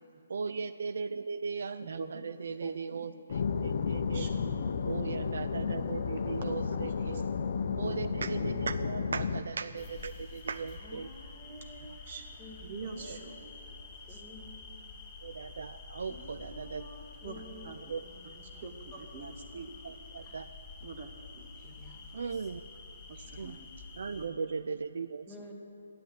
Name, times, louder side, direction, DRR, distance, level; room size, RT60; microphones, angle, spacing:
voice 1, 0.3-4.3 4.9-7.2 7.8-11.1 15.2-16.8 17.9-18.0 19.2-19.3 19.8-20.5 22.1-22.6 23.4-23.6 24.0-25.3, right 5 dB, 70° right, 12 dB, 0.3 m, -38 dB
voice 2, 1.8-3.1 3.7-4.6 5.1-5.2 5.7-6.0 6.4-6.6 7.0-7.1 7.8-7.9 8.4-8.5 12.1-12.2 12.6-13.3 14.1-14.2 17.2-17.9 18.4-19.7 20.8-21.5 23.1-23.7 24.2-24.4 25.4-25.5, right 4 dB, 45° right, 5 dB, 0.9 m, -45 dB
sound 1, 3.3-9.4, left 5 dB, 55° left, 0.6 m, -32 dB
sound 2, 9.8-24.3, left 3 dB, 20° left, 2.5 m, -49 dB
voice 3, 10.8-12.1 12.4-13.8 14.1-14.9 16.1-18.6 18.9-19.0 20.2-20.4 21.5-22.5 23.1-23.6 25.3-25.5, equal, 10° right, -3 dB, 1.9 m, -52 dB
10.5 x 8.6 x 8.5 m, 2.6 s
hypercardioid pair, 155°, 0 cm